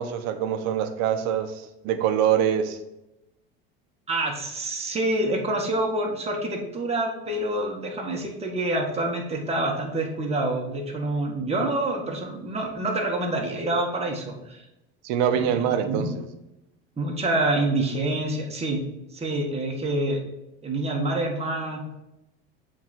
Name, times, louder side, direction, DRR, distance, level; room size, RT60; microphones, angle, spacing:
voice 1, 0.0-1.5 1.8-2.8 15.0-16.2, right 9 dB, 70° right, 8 dB, 1.0 m, -24 dB
voice 2, 4.1-14.7 15.3-16.1 17.0-18.8 19.1-20.2 20.6-21.8, right 2 dB, 20° right, -1 dB, 1.8 m, -27 dB
7.9 x 3.8 x 4.5 m, 0.90 s
supercardioid pair, 85°, 29 cm